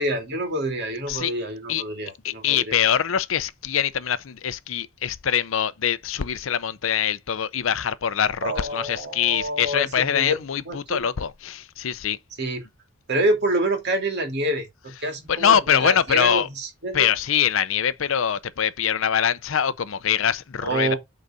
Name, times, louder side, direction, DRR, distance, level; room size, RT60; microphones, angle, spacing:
voice 1, 0.0-2.8 8.4-11.1 12.4-12.6 13.1-17.1 20.6-21.0, right 1 dB, 55° right, 2.8 m, -27 dB
voice 2, 2.2-12.2 15.3-16.5 16.9-20.9, left 8 dB, 70° left, 0.6 m, -23 dB
8.0 x 4.0 x 4.9 m
head